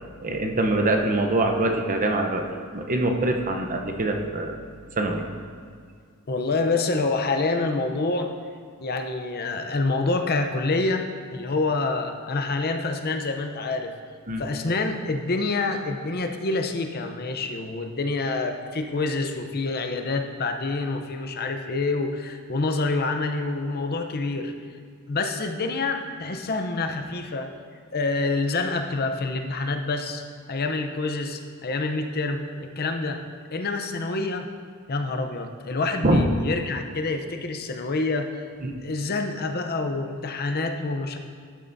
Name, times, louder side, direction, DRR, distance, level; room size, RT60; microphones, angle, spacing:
voice 1, 0.2-4.5 5.0-5.3 14.3-14.4 36.0-36.2 38.6-38.7, right 2 dB, 35° right, 3 dB, 0.8 m, -24 dB
voice 2, 6.3-8.3 8.8-11.1 11.3-13.9 14.4-24.5 25.1-27.5 27.9-30.2 30.5-33.2 33.5-34.5 34.9-38.4 38.8-41.2, left 3 dB, 45° left, 5 dB, 0.7 m, -27 dB
12.0 x 9.2 x 2.7 m, 2.1 s
head